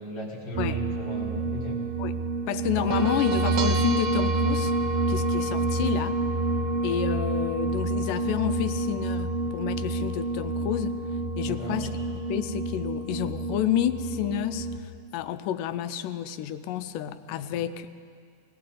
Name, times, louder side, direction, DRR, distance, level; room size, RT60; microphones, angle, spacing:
voice 1, 0.0-1.8 11.5-11.8 17.4-17.5, equal, 50° left, -3 dB, 2.6 m, -36 dB
sound 1, 0.5-14.8, right 2 dB, 85° right, 1.3 m, -28 dB
voice 2, 2.5-4.7 5.1-6.2 6.8-11.0 11.4-11.9 12.3-17.9, left 11 dB, 85° left, 11 dB, 2.2 m, -30 dB
19.5 x 17.5 x 3.8 m, 2.1 s
omnidirectional pair, 3.7 m